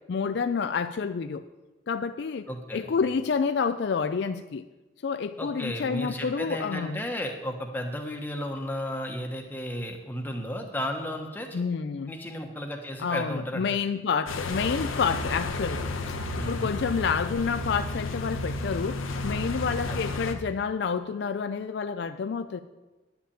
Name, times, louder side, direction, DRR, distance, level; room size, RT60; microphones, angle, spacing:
voice 1, 0.1-1.5 1.9-4.7 5.0-7.0 11.5-12.2 13.0-22.6, left 5 dB, 55° left, 10 dB, 0.4 m, -29 dB
voice 2, 2.5-2.9 5.4-11.7 12.1-13.6 16.4-16.7 19.9-20.1, equal, 10° left, 2 dB, 1.1 m, -34 dB
sound 1, 14.3-20.3, left 2 dB, 85° left, 1.0 m, -32 dB
10.5 x 5.8 x 8.6 m, 1.1 s
head